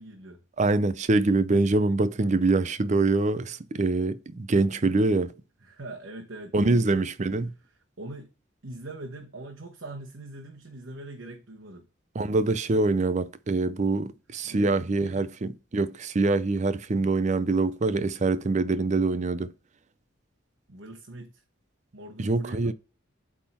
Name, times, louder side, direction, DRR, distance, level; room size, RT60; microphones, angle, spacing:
voice 1, 0.0-0.4 5.6-7.1 8.0-8.3 8.6-11.9 14.4-15.3 20.7-21.4 21.9-22.7, right 2 dB, 65° right, 1.1 m, -42 dB
voice 2, 0.6-5.3 6.5-7.5 12.1-19.5 22.2-22.7, right 3 dB, 35° right, 0.5 m, -24 dB
8.3 x 3.7 x 4.3 m
head